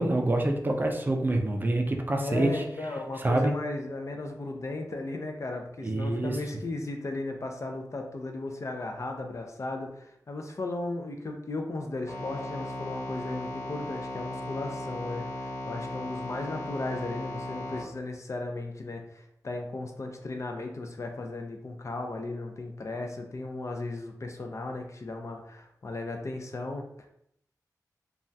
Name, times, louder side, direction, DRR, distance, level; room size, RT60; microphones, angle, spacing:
voice 1, 0.0-2.6 3.2-3.5 5.8-6.4, right 2 dB, 30° right, 3 dB, 0.4 m, -26 dB
voice 2, 2.2-27.1, left 2 dB, 45° left, 3 dB, 0.4 m, -36 dB
sound 1, 12.1-17.8, left 1 dB, 75° left, 1.1 m, -37 dB
3.2 x 2.3 x 2.6 m, 0.73 s
wide cardioid pair, 100°, 7 cm